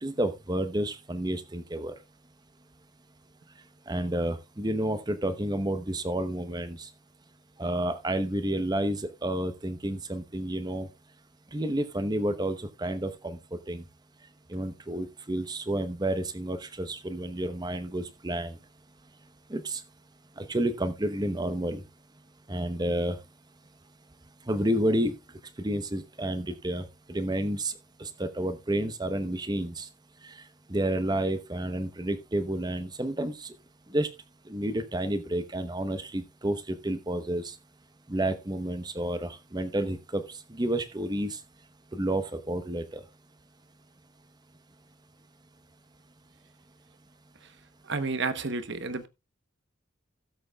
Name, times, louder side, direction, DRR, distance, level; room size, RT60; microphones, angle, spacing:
voice 1, 0.0-1.9 3.9-6.9 7.6-10.9 11.5-13.4 13.7-13.8 14.5-18.6 19.5-19.8 20.4-21.8 22.5-23.2 24.5-25.1 25.6-27.7 28.0-29.9 30.2-30.3 30.7-33.5 33.9-34.1 34.5-37.5 38.1-40.2 40.5-41.4 41.9-43.0, right 1 dB, 20° right, 0.8 m, -30 dB
voice 2, 47.8-49.1, right 4 dB, 55° right, 1.0 m, -31 dB
16.5 x 7.6 x 2.3 m
head